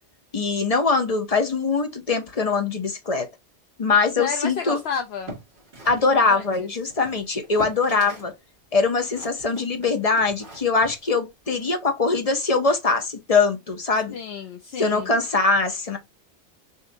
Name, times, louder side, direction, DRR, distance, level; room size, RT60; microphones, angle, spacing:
voice 1, 0.3-3.3 3.8-4.8 5.9-8.3 8.7-14.1 14.8-16.0, left 4 dB, 35° left, 0.9 m, -22 dB
voice 2, 4.2-5.3 6.3-6.7 14.1-15.1, left 6 dB, 70° left, 0.9 m, -31 dB
sound 1, 5.0-8.4 8.6-11.8, right 1 dB, 50° right, 2.0 m, -42 dB
6.4 x 2.7 x 2.6 m
omnidirectional pair, 1.2 m